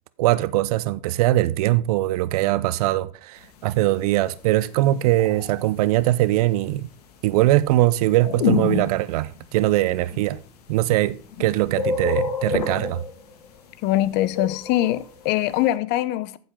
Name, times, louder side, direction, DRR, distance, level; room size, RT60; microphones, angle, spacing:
voice 1, 0.2-6.9 7.2-10.4 10.7-13.0, right 16 dB, 75° right, 0.7 m, -21 dB
sound 1, 4.7-5.7 8.2-9.4 10.1-10.2 11.2-11.4 11.7-13.5 14.3-15.3, left 4 dB, 85° left, 2.1 m, -26 dB
voice 2, 13.8-16.4, left 15 dB, 60° left, 0.9 m, -23 dB
14.5 x 7.7 x 3.8 m
hypercardioid pair, 90°, 19 cm